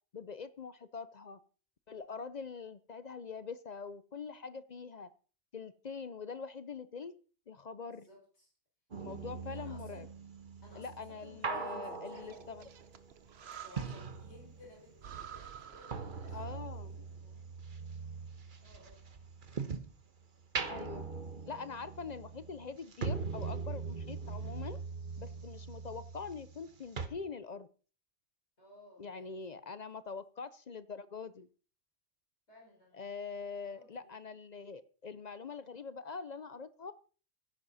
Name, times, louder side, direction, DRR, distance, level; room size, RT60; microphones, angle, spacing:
voice 1, 0.1-1.4 1.9-5.1 5.5-7.1 7.5-8.1 9.0-10.1 10.8-12.6 16.3-17.0 20.7-21.1 21.4-24.8 25.2-27.7 29.0-31.5 32.9-36.9, left 5 dB, 45° left, 14 dB, 0.7 m, -44 dB
voice 2, 7.9-8.5 9.2-10.1 10.6-12.5 13.6-17.4 18.6-19.0 28.6-29.6 32.5-33.1 33.6-34.1, left 1 dB, 80° left, -3 dB, 6.1 m, -58 dB
sound 1, 8.9-14.9 15.2-20.0 20.4-26.7 27.0-27.1, right 5 dB, 50° right, 1.2 m, -41 dB
Breathing, 12.1-14.3 14.6-14.7 15.0-16.7, right 8 dB, 70° right, 1.1 m, -50 dB
15.0 x 10.5 x 4.1 m, 0.39 s
omnidirectional pair, 1.1 m